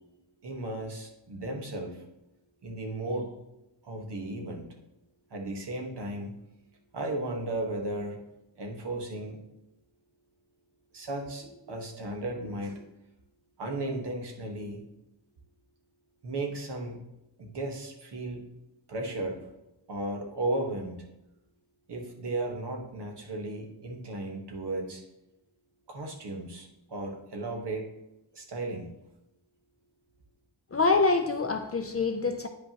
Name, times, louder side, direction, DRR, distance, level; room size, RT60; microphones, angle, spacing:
voice 1, 0.4-2.0 2.6-3.3 3.8-4.7 5.3-6.4 6.9-8.2 8.6-9.4 10.9-12.8 13.6-14.8 16.2-17.0 17.4-18.5 18.9-19.5 19.9-21.1 21.9-25.0 25.9-27.9 28.3-28.9, right 2 dB, 60° right, 1 dB, 1.4 m, -35 dB
voice 2, 30.7-32.5, left 4 dB, 30° left, 6 dB, 0.4 m, -25 dB
9.8 x 5.2 x 2.9 m, 0.89 s
wide cardioid pair, 155°, 45 cm